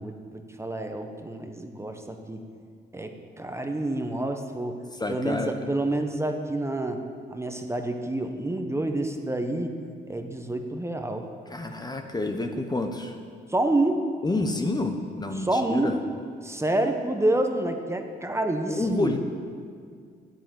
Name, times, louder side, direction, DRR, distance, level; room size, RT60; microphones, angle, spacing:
voice 1, 0.0-2.4 2.9-4.8 5.1-7.0 7.3-9.7 10.1-11.2 13.5-14.0 15.3-15.9 16.4-19.1, right 1 dB, 15° right, 5 dB, 1.1 m, -28 dB
voice 2, 4.9-5.5 11.5-13.2 14.2-16.0 18.7-19.2, left 2 dB, 20° left, 5 dB, 1.0 m, -28 dB
9.9 x 9.3 x 7.7 m, 2.1 s
cardioid pair, 90°, 20 cm